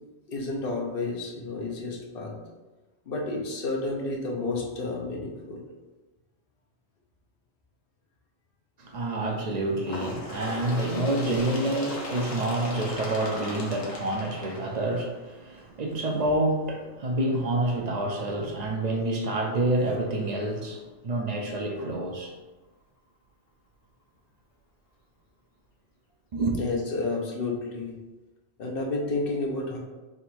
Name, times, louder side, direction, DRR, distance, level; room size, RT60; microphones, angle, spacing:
voice 1, 0.3-2.3 3.1-5.6 9.9-10.1 26.6-27.9 28.6-29.8, left 3 dB, 50° left, -1 dB, 0.9 m, -31 dB
voice 2, 8.8-22.3 26.3-26.6, right 2 dB, 50° right, 1 dB, 0.5 m, -28 dB
Bird, 9.8-15.3 16.2-16.3 16.7-16.8 17.6-17.7 18.6-18.7 19.6-19.7, left 2 dB, 85° left, 1.2 m, -37 dB
3.7 x 2.5 x 4.3 m, 1.2 s
omnidirectional pair, 1.3 m